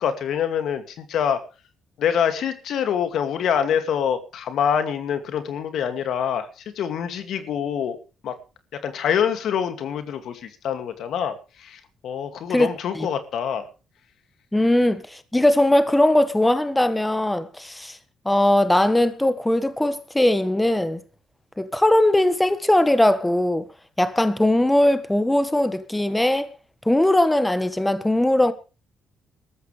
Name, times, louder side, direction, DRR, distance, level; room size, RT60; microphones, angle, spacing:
voice 1, 0.0-1.4 2.0-8.0 8.2-8.3 8.8-13.7, left 8 dB, 75° left, 2.3 m, -25 dB
voice 2, 14.5-18.0 18.2-21.0 21.6-23.7 24.0-26.5 26.8-28.5, left 1 dB, 10° left, 1.5 m, -20 dB
20.0 x 13.5 x 3.3 m
cardioid pair, 90°, 0 cm